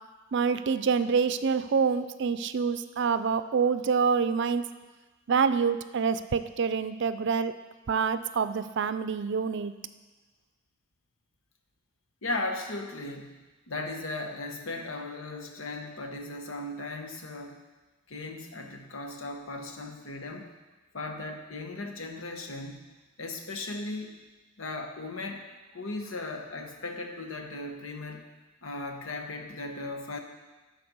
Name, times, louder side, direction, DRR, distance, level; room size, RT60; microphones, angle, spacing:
voice 1, 0.3-4.7 5.3-7.5 7.9-9.7, right 5 dB, 60° right, 12 dB, 0.4 m, -26 dB
voice 2, 12.2-13.4 13.7-17.6 18.1-20.5 20.9-22.8 23.2-24.2 24.6-25.4 25.7-28.3 28.6-30.2, left 2 dB, 85° left, 4 dB, 1.1 m, -37 dB
12.5 x 4.4 x 6.1 m, 1.2 s
head